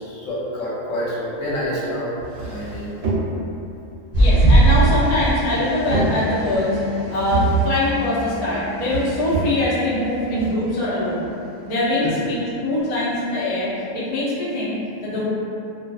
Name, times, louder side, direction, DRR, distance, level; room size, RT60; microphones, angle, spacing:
voice 1, 0.0-2.1 2.4-2.9 12.0-12.2, left 1 dB, 80° left, -8 dB, 1.1 m, -27 dB
sound 1, 2.2-3.6 4.7-5.5 5.7-6.6 7.2-7.9 8.8-9.8 10.4-10.5, right 3 dB, 70° right, 0.8 m, -26 dB
sound 2, 4.1-8.8 9.4-9.7 10.0-10.1, right 2 dB, 15° right, 0.6 m, -20 dB
voice 2, 4.2-6.7 7.1-11.2 11.6-15.3, left 1 dB, 45° left, -9 dB, 0.5 m, -23 dB
Bass guitar, 6.6-12.8, left 1 dB, 25° left, 0.9 m, -37 dB
2.4 x 2.2 x 2.3 m, 2.7 s
omnidirectional pair, 1.4 m